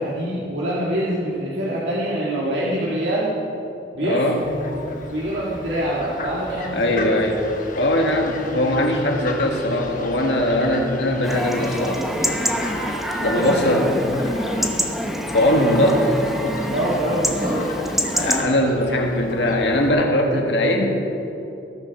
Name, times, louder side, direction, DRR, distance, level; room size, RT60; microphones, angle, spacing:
voice 1, 0.0-3.4 3.9-4.2 5.0-7.2 13.3-13.5 13.9-14.0 16.7-17.6, right 1 dB, 75° right, -6 dB, 2.0 m, -25 dB
voice 2, 4.0-4.5 6.7-7.4 7.8-12.0 13.2-14.0 15.3-16.8 18.1-21.0, left 1 dB, 75° left, 1 dB, 1.9 m, -20 dB
Fowl, 4.4-19.9, left 2 dB, 50° left, 1.3 m, -36 dB
Chatter / Livestock farm animals working animals / Chirp tweet, 11.2-18.4, equal, ahead, 1.0 m, -25 dB
20.0 x 7.5 x 5.9 m, 2.8 s
head